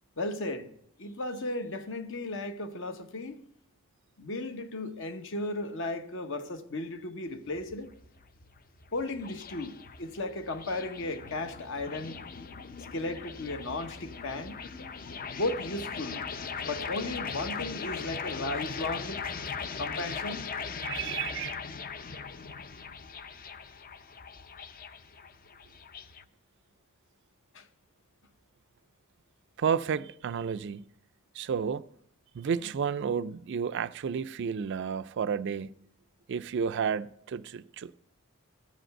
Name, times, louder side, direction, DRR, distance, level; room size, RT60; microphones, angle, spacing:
voice 1, 0.2-0.7 1.0-3.4 4.2-7.9 8.9-12.2 12.9-14.6 15.3-16.2 16.6-19.2 19.8-20.5 27.5-27.7, left 2 dB, 60° left, 1.0 m, -35 dB
sound 1, 7.3-26.2, left 5 dB, 40° left, 0.5 m, -40 dB
voice 2, 20.8-21.6 29.6-30.8 31.4-31.8 32.3-35.7 36.3-37.9, right 7 dB, 55° right, 0.3 m, -31 dB
13.5 x 5.2 x 7.6 m
head